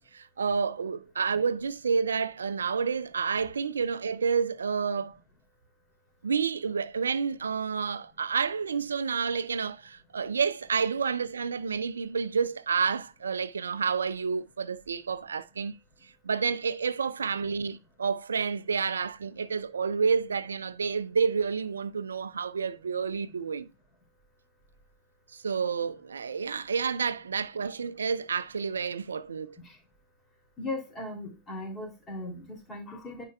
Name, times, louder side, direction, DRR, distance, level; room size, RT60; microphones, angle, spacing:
voice 1, 0.1-5.2 6.2-15.8 16.0-23.7 25.3-29.6, right 5 dB, 70° right, 0.3 m, -29 dB
voice 2, 30.6-33.3, left 2 dB, 20° left, 2.8 m, -38 dB
9.5 x 5.6 x 2.2 m
figure-of-eight pair, 90°, 0 cm